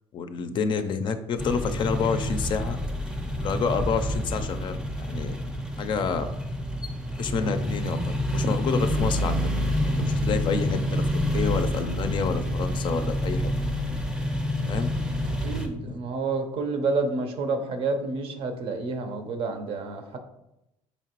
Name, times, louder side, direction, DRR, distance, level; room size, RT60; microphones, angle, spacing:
voice 1, 0.1-2.8 3.4-5.4 5.8-6.3 7.2-9.4 9.7-11.0 11.3-13.5 14.7-14.9 15.8-16.0, left 5 dB, 45° left, 9 dB, 0.4 m, -28 dB
sound 1, 1.4-15.7, equal, 5° right, 0.6 m, -28 dB
voice 2, 15.3-20.2, right 3 dB, 60° right, 6 dB, 0.6 m, -29 dB
4.2 x 2.9 x 2.9 m, 0.87 s
cardioid pair, 100°, 11 cm